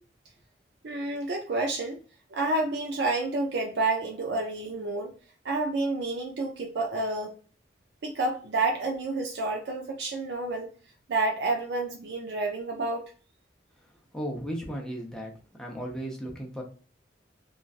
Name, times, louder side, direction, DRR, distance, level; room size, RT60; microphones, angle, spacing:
voice 1, 0.8-2.0 2.3-5.1 5.4-7.3 8.0-10.7 11.1-13.1, right 2 dB, 70° right, 2 dB, 0.5 m, -29 dB
voice 2, 14.1-15.3 15.6-16.6, equal, 5° left, -1 dB, 0.7 m, -35 dB
3.1 x 2.4 x 2.4 m, 0.38 s
head